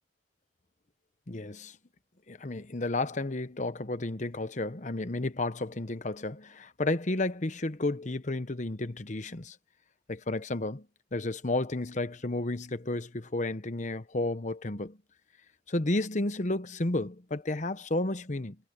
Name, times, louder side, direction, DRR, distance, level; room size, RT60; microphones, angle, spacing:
voice 1, 1.3-1.8 2.3-9.6 10.1-10.9 11.1-15.0 15.7-18.6, left 2 dB, 40° left, 1.0 m, -32 dB
head